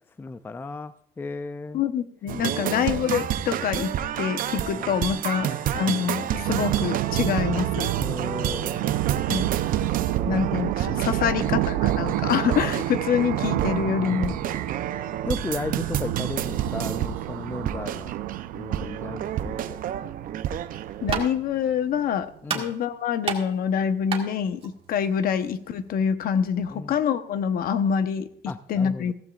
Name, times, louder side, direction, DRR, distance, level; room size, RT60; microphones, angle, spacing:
voice 1, 0.2-1.8 2.6-2.9 4.8-4.9 5.4-5.5 8.0-8.9 11.2-11.6 12.3-12.5 14.0-14.6 15.2-18.1 18.5-19.8 22.4-22.7 26.7-26.9 28.5-29.1, left 3 dB, 10° left, 12 dB, 0.4 m, -35 dB
voice 2, 1.7-3.9 4.2-7.9 9.3-9.5 10.3-14.4 21.0-28.3 28.7-29.1, left 7 dB, 55° left, 11 dB, 1.0 m, -26 dB
sound 1, 2.3-21.3, right 10 dB, 50° right, 0.7 m, -30 dB
sound 2, 6.4-21.8, right 16 dB, 85° right, 0.5 m, -29 dB
sound 3, 20.6-25.9, right 6 dB, 30° right, 1.8 m, -35 dB
15.5 x 14.5 x 2.5 m, 0.72 s
cardioid pair, 140°, 18 cm